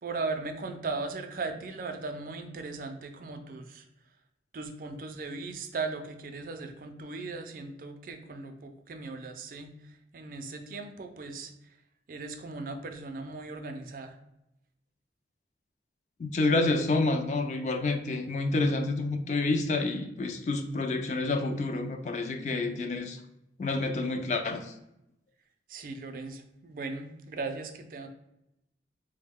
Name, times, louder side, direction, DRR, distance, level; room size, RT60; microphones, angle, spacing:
voice 1, 0.0-3.9 4.5-11.8 12.1-14.2 25.7-28.1, right 3 dB, 50° right, 6 dB, 0.4 m, -38 dB
voice 2, 16.2-23.2 23.6-24.7, left 2 dB, 40° left, 6 dB, 0.3 m, -28 dB
3.6 x 2.1 x 3.4 m, 0.85 s
head